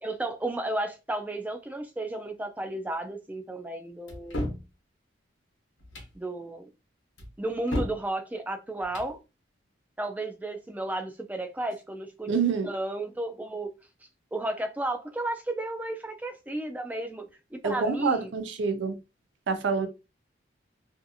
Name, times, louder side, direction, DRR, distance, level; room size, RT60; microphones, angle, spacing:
voice 1, 0.0-4.5 6.1-6.7 7.4-9.2 10.0-12.3 12.6-13.7 14.3-17.2 17.5-18.3, right 2 dB, 10° right, 0.3 m, -33 dB
sound 1, 4.1-4.7 5.8-6.1 7.2-8.0 8.8-9.1, left 1 dB, 85° left, 0.9 m, -33 dB
voice 2, 12.3-12.7 17.6-19.0 19.5-19.9, right 5 dB, 75° right, 0.5 m, -27 dB
2.6 x 2.4 x 2.6 m
head